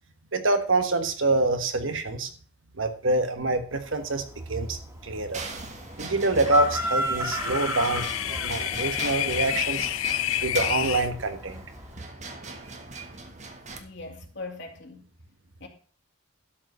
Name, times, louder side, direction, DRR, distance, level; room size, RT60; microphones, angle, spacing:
voice 1, 0.3-2.3 2.7-4.2 4.5-5.5 6.0-9.9 10.4-11.6 12.9-13.0, right 2 dB, 65° right, 8 dB, 1.4 m, -26 dB
Chicken rooster, 3.7-12.0, equal, 15° right, 2.3 m, -34 dB
sound 1, 5.3-13.8, right 3 dB, 35° right, 1.4 m, -40 dB
sound 2, 6.8-11.1, left 13 dB, 75° left, 0.4 m, -29 dB
voice 2, 13.8-15.0 15.6-15.7, left 3 dB, 55° left, 3 dB, 2.3 m, -40 dB
12.0 x 5.2 x 6.8 m, 0.43 s
head